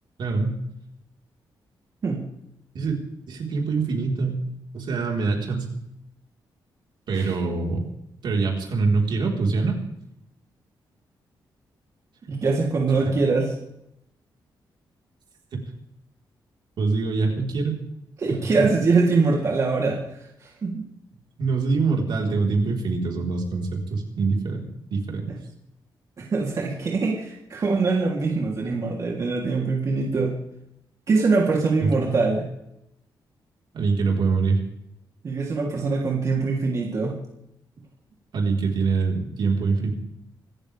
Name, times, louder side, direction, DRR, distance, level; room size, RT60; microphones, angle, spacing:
voice 1, 0.2-0.6 2.7-3.0 3.3-4.4 4.7-5.7 7.1-7.8 8.2-9.7 13.0-13.1 16.8-17.7 18.3-18.7 21.4-24.7 24.9-25.4 31.8-32.1 33.7-34.6 38.3-39.9, right 4 dB, 65° right, 0 dB, 4.4 m, -24 dB
voice 2, 12.3-13.4 18.2-20.0 20.4-20.8 26.2-30.3 31.1-32.5 35.2-37.1, right 4 dB, 40° right, -2 dB, 3.2 m, -23 dB
26.5 x 14.0 x 3.5 m, 0.79 s
wide cardioid pair, 175°, 8 cm